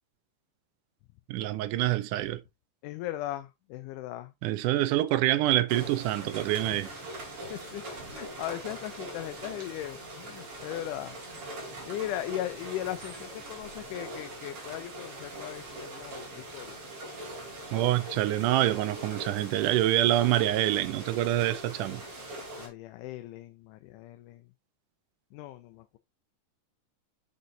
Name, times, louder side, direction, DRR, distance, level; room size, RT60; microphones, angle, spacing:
voice 1, 1.3-2.4 4.4-6.9 17.7-22.0, right 14 dB, 80° right, 2.1 m, -26 dB
voice 2, 2.8-4.3 6.7-6.8 7.4-11.5 11.9-16.8 22.6-24.5 25.3-26.0, left 14 dB, 80° left, 2.1 m, -38 dB
sound 1, 5.7-22.7, right 1 dB, 45° right, 3.3 m, -42 dB
6.7 x 6.5 x 2.7 m
omnidirectional pair, 3.8 m